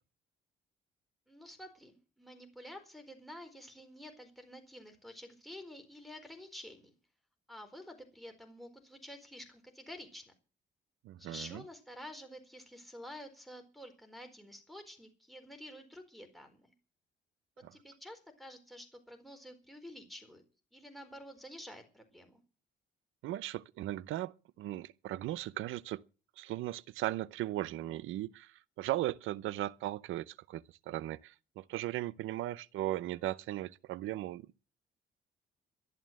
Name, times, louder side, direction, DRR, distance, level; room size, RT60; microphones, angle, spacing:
voice 1, 1.3-6.9 7.5-10.3 11.2-16.7 17.7-20.4 20.7-22.4, left 1 dB, ahead, 4.4 m, -50 dB
voice 2, 11.0-11.6 17.6-17.7 23.2-26.0 26.4-34.5, right 15 dB, 85° right, 0.7 m, -37 dB
12.0 x 11.5 x 7.5 m
cardioid pair, 90°, 20 cm